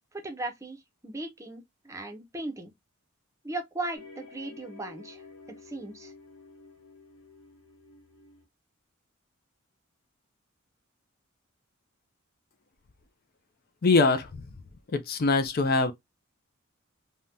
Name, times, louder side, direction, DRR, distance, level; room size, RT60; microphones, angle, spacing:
voice 1, 0.2-2.7 3.4-5.2 5.7-6.1, right 2 dB, 15° right, 0.6 m, -37 dB
sound 1, 3.9-8.4, left 4 dB, 80° left, 1.3 m, -50 dB
voice 2, 13.8-14.3 14.9-15.9, left 3 dB, 45° left, 0.4 m, -23 dB
3.5 x 2.2 x 2.5 m
head